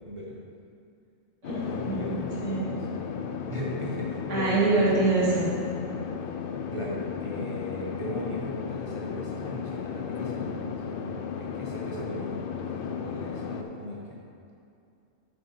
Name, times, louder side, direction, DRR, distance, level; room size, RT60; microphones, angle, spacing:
voice 1, 0.1-0.4 1.7-2.3 2.7-3.1 3.5-4.7 6.7-14.2, equal, 25° right, -5 dB, 1.1 m, -37 dB
sound 1, 1.4-13.6, left 7 dB, 60° left, 0.6 m, -34 dB
voice 2, 1.4-2.7 4.3-5.5, right 3 dB, 80° right, -7 dB, 1.9 m, -25 dB
7.3 x 5.5 x 5.6 m, 2.5 s
omnidirectional pair, 1.3 m